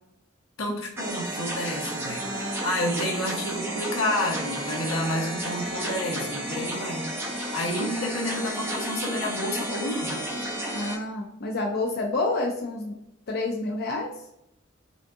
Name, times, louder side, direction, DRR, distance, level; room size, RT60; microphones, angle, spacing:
voice 1, 0.6-7.1 7.5-10.2, left 1 dB, 90° left, -1 dB, 1.0 m, -30 dB
sound 1, 1.0-11.0, right 1 dB, 10° right, 0.9 m, -32 dB
voice 2, 2.2-3.0 7.8-7.9 10.7-12.9 13.3-14.1, left 2 dB, 55° left, 0 dB, 0.5 m, -29 dB
5.0 x 2.5 x 2.6 m, 0.81 s
head